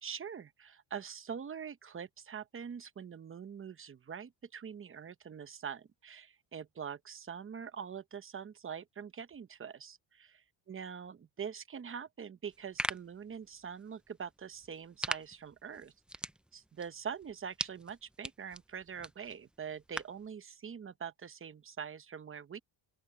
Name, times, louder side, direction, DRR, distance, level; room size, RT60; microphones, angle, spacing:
voice 1, 0.0-10.4 10.7-15.9 16.5-22.6, right 7 dB, 25° right, 0.8 m, -44 dB
sound 1, 12.4-20.3, right 1 dB, ahead, 0.3 m, -43 dB
open air
cardioid pair, 125°, 48 cm